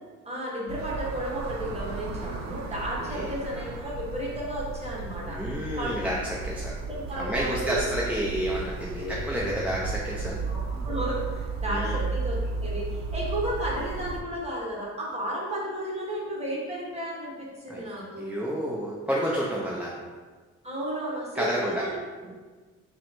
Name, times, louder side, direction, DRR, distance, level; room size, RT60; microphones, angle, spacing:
voice 1, 0.2-5.4 5.8-5.9 6.9-7.9 8.9-9.4 10.5-18.4 19.3-19.4 20.6-22.3, right 1 dB, 20° right, -5 dB, 1.3 m, -33 dB
sound 1, 0.7-14.2, right 3 dB, 65° right, 0.5 m, -34 dB
voice 2, 5.2-6.7 7.2-10.4 11.7-12.0 17.7-17.8 18.2-19.9 21.4-21.8, equal, 5° right, -5 dB, 0.5 m, -30 dB
3.6 x 2.2 x 4.4 m, 1.4 s
cardioid pair, 90°, 30 cm